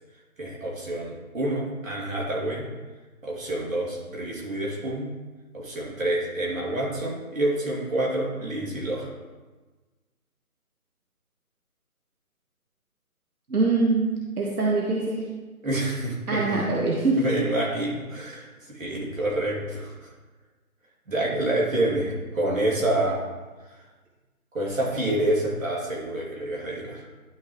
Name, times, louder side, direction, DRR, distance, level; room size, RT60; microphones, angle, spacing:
voice 1, 0.4-2.7 3.2-5.1 5.5-9.1 15.6-16.6 17.1-20.1 21.1-23.2 24.5-27.0, right 1 dB, 65° right, -3 dB, 2.6 m, -27 dB
voice 2, 13.5-15.3 16.3-17.3, right 3 dB, 85° right, -3 dB, 1.5 m, -24 dB
11.5 x 5.2 x 3.1 m, 1.3 s
hypercardioid pair, 180°, 44 cm